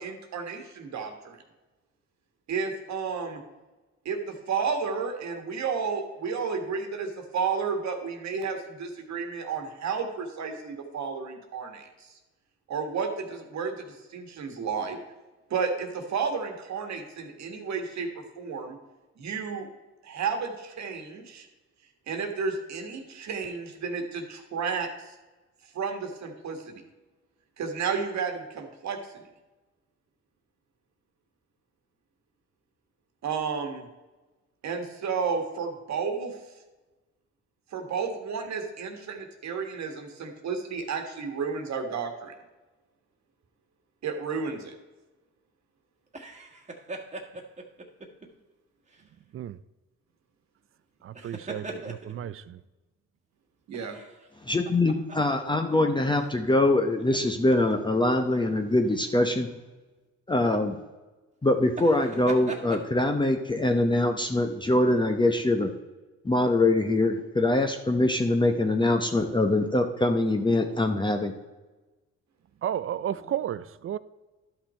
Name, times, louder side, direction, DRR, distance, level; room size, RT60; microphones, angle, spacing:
voice 1, 0.0-1.4 2.5-3.4 4.0-11.9 12.7-15.0 15.5-18.8 19.2-19.7 20.0-21.5 22.1-25.1 25.7-26.7 27.6-29.0 33.2-33.8 34.6-36.4 37.7-42.3 44.0-44.7 53.7-54.0, right 5 dB, 65° right, 1.6 m, -32 dB
sound 1, 46.1-48.3 48.9-49.1 51.0-52.3 53.7-55.8 56.1-56.3 57.0-57.7 58.9-59.1 61.7-62.8, right 2 dB, 25° right, 1.5 m, -41 dB
voice 2, 51.0-52.6 72.6-74.0, right 10 dB, 45° right, 0.4 m, -33 dB
voice 3, 54.4-59.5 60.3-60.8 61.4-65.7 66.2-71.3, left 2 dB, 15° left, 0.8 m, -23 dB
12.0 x 5.8 x 4.3 m
cardioid pair, 90°, 30 cm